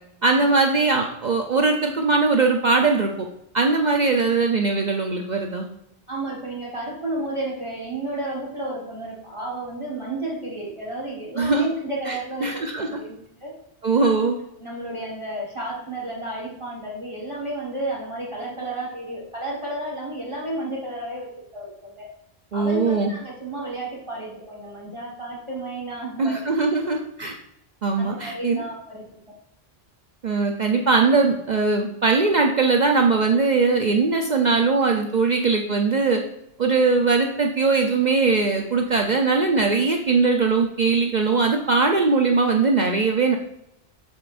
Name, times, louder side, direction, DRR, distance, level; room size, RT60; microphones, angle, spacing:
voice 1, 0.2-3.3 3.5-5.7 11.4-11.7 12.1-12.2 12.4-12.9 13.8-14.4 22.5-23.1 26.2-27.4 27.8-28.6 30.2-36.2 36.6-43.4, right 4 dB, 50° right, 3 dB, 0.7 m, -20 dB
voice 2, 6.1-12.5 12.8-13.5 14.0-14.1 14.6-22.1 22.5-26.5 28.0-29.1, right 1 dB, 30° right, -3 dB, 1.5 m, -32 dB
7.1 x 7.0 x 2.5 m, 0.79 s
omnidirectional pair, 1.1 m